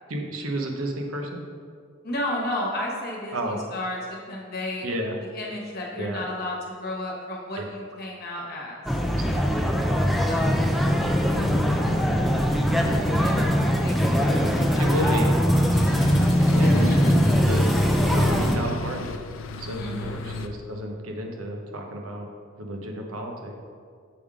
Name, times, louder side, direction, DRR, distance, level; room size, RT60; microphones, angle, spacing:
voice 1, 0.1-1.4 3.3-3.6 4.8-5.2 6.0-6.2 7.6-7.7 14.8-15.3 16.4-17.1 17.3-17.6 18.0-19.1 19.6-22.3 22.6-23.5, right 1 dB, 90° right, 2 dB, 0.8 m, -31 dB
voice 2, 2.0-4.9 5.3-8.8 10.3-10.6 12.8-13.5 13.8-15.2 16.0-16.2 16.6-17.1 19.8-20.3, left 1 dB, 50° left, -2 dB, 1.2 m, -33 dB
sound 1, 8.9-18.6, equal, ahead, 0.4 m, -21 dB
sound 2, 12.9-20.5, left 3 dB, 65° left, 0.4 m, -37 dB
6.9 x 3.6 x 4.9 m, 2.1 s
head